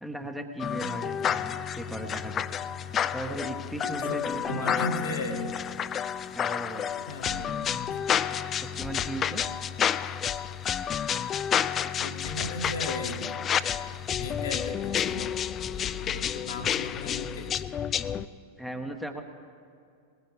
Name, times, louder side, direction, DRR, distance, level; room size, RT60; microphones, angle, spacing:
voice 1, 0.0-2.8 3.1-4.9 6.3-6.9 8.3-9.4 18.6-19.2, right 1 dB, ahead, 4 dB, 1.2 m, -37 dB
sound 1, 0.6-18.3, left 8 dB, 25° left, 0.4 m, -30 dB
voice 2, 3.9-5.5 7.1-8.0 12.0-13.4 14.2-15.4 15.7-17.6, left 2 dB, 65° left, 2 dB, 1.9 m, -36 dB
21.0 x 20.0 x 3.4 m, 2.4 s
figure-of-eight pair, 90°, 0 cm